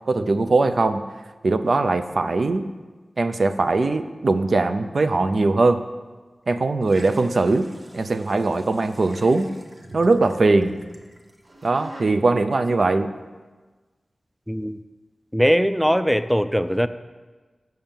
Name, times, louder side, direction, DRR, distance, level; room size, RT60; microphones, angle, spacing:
voice 1, 0.1-1.0 1.4-2.7 3.2-5.8 6.5-7.7 7.9-9.5 9.9-10.8 11.6-13.1, right 3 dB, 65° right, 10 dB, 0.4 m, -20 dB
sound 1, 6.8-12.0, right 1 dB, 45° right, 1.1 m, -45 dB
voice 2, 14.5-14.8 15.3-16.9, equal, ahead, 12 dB, 0.4 m, -20 dB
7.8 x 5.4 x 7.3 m, 1.3 s
cardioid pair, 50°, 0 cm